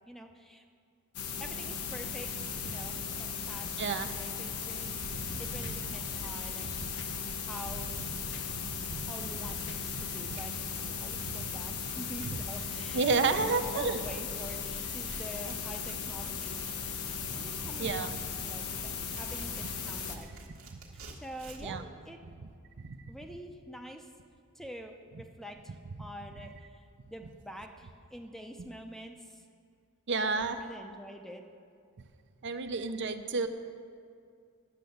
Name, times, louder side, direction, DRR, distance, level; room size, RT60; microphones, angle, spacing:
voice 1, 0.1-0.6 1.4-6.7 7.4-8.0 9.0-10.5 10.9-16.6 17.3-20.3 21.2-22.2 23.1-24.1 24.5-29.4 30.3-31.4, equal, ahead, 4 dB, 0.6 m, -46 dB
sound 1, 1.1-20.2, left 6 dB, 90° left, 1.0 m, -37 dB
voice 2, 3.8-4.1 5.3-5.4 8.7-9.1 11.4-11.5 12.9-14.0 17.2-17.3 17.8-18.2 21.6-21.8 22.8-23.0 30.1-30.6 32.4-33.5, right 4 dB, 55° right, 8 dB, 0.5 m, -30 dB
sound 2, 5.0-7.3 7.6-10.0, left 1 dB, 50° left, 0.9 m, -48 dB
Tearing, 9.6-9.7 10.0-10.1 10.3-21.8, right 2 dB, 70° right, 1.5 m, -50 dB
10.0 x 6.7 x 7.8 m, 2.4 s
head